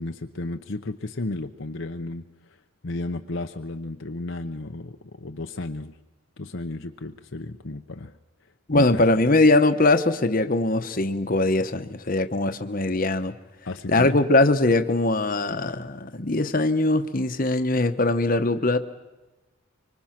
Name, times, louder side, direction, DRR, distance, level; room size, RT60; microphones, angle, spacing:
voice 1, 0.0-2.2 2.8-6.0 6.4-8.1 8.7-9.1 13.6-14.2, left 2 dB, 60° left, 6 dB, 0.8 m, -33 dB
voice 2, 8.7-13.3 13.9-18.8, left 2 dB, 40° left, 9 dB, 1.1 m, -21 dB
25.0 x 24.5 x 5.9 m, 1.1 s
head